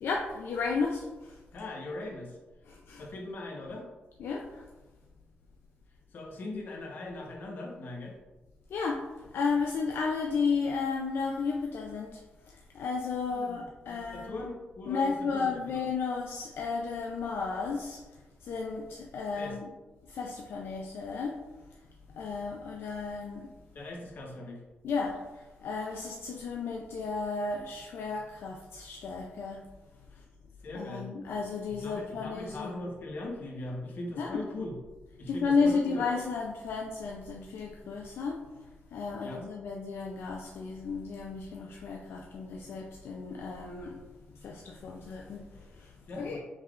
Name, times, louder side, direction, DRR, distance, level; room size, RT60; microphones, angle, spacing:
voice 1, 0.0-1.4 2.7-3.0 4.2-4.6 8.7-9.0 9.3-12.2 12.7-14.4 14.9-18.0 18.4-19.7 20.1-21.4 22.2-23.5 24.8-25.2 25.6-29.6 30.7-32.8 34.2-34.4 35.3-38.4 38.9-44.0 44.4-45.9 46.2-46.4, left 4 dB, 75° left, 0 dB, 0.4 m, -33 dB
voice 2, 1.5-2.4 3.0-3.9 6.1-8.1 13.3-15.8 19.4-19.6 23.7-24.6 30.1-30.2 30.6-31.1 31.7-34.7 35.2-36.0 39.2-39.5 46.1-46.4, left 2 dB, 55° left, -1 dB, 0.9 m, -40 dB
5.3 x 3.5 x 2.4 m, 1.1 s
wide cardioid pair, 160°, 4 cm